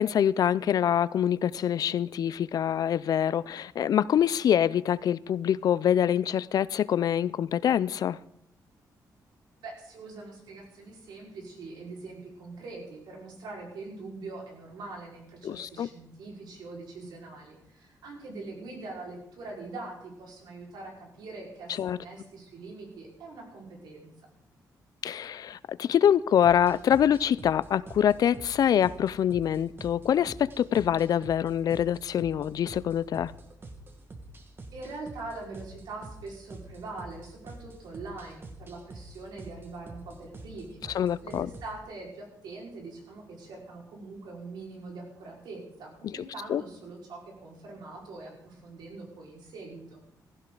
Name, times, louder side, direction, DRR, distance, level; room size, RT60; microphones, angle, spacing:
voice 1, 0.0-8.2 15.4-15.9 21.8-22.0 25.0-33.3 40.9-41.5 46.5-46.6, left 9 dB, 65° left, 0.4 m, -25 dB
voice 2, 9.6-24.1 34.7-50.0, right 3 dB, 85° right, 4.8 m, -43 dB
sound 1, 26.4-41.8, right 2 dB, 30° right, 1.6 m, -46 dB
16.0 x 15.0 x 3.9 m
cardioid pair, 130°, 7 cm